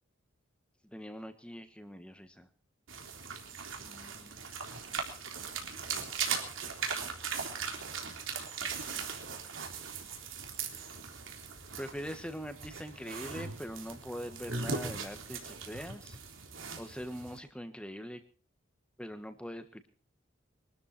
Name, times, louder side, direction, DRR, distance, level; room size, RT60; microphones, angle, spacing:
voice 1, 0.9-2.5 3.8-4.5 11.8-16.2 16.8-18.2 19.0-19.9, equal, 5° left, 8 dB, 1.5 m, -43 dB
sound 1, 2.9-17.4, right 5 dB, 75° right, 3.6 m, -39 dB
23.5 x 13.0 x 4.4 m, 0.38 s
head